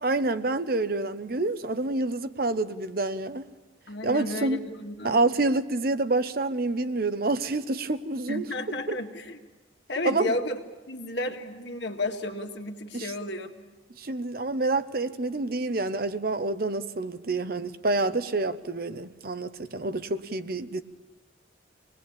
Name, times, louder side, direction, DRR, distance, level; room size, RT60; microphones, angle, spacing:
voice 1, 0.0-3.4 4.0-4.6 5.0-8.5 8.9-9.0 10.0-10.3 12.9-13.1 14.0-20.8, right 2 dB, 50° right, 12 dB, 0.8 m, -27 dB
voice 2, 3.9-5.2 8.3-9.4 9.9-10.6 10.9-13.5, left 1 dB, 65° left, 3 dB, 2.0 m, -32 dB
25.5 x 20.0 x 8.7 m, 1.2 s
head